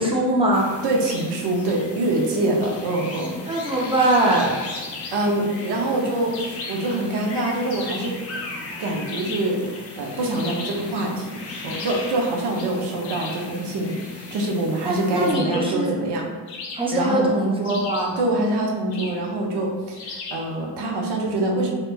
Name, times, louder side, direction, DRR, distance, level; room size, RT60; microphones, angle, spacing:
voice 1, 0.0-0.7 3.5-4.6 14.8-15.9 16.7-18.2, right 1 dB, 10° right, -3 dB, 0.6 m, -21 dB
sound 1, 0.5-15.3, left 3 dB, 30° left, 0.5 m, -37 dB
voice 2, 0.8-3.4 5.1-8.1 8.8-16.3 16.9-17.3 18.2-21.8, right 2 dB, 55° right, -1 dB, 0.7 m, -25 dB
sound 2, 4.7-5.3 6.3-6.9 7.7-8.2 9.1-9.6 10.3-10.9 11.7-12.2 13.0-13.5 15.3-15.8 16.5-17.1 17.6-18.2 18.9-19.3 20.0-20.5, left 4 dB, 75° left, 0.6 m, -36 dB
2.9 x 2.0 x 2.2 m, 1.4 s
hypercardioid pair, 40°, 50 cm